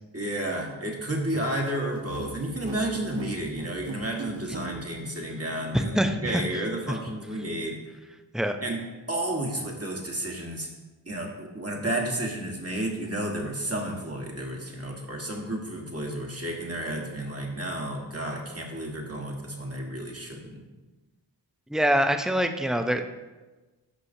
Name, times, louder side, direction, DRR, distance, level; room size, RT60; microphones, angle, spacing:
voice 1, 0.1-7.8 8.6-8.8 9.1-10.7 11.1-20.6, right 1 dB, 35° right, -1 dB, 1.5 m, -32 dB
sound 1, 1.9-4.7, right 2 dB, 70° right, 1.2 m, -37 dB
voice 2, 5.7-6.5 6.9-7.0 8.3-8.6 21.7-23.0, equal, ahead, 6 dB, 0.5 m, -24 dB
11.5 x 6.2 x 2.7 m, 1.2 s
wide cardioid pair, 65°, 42 cm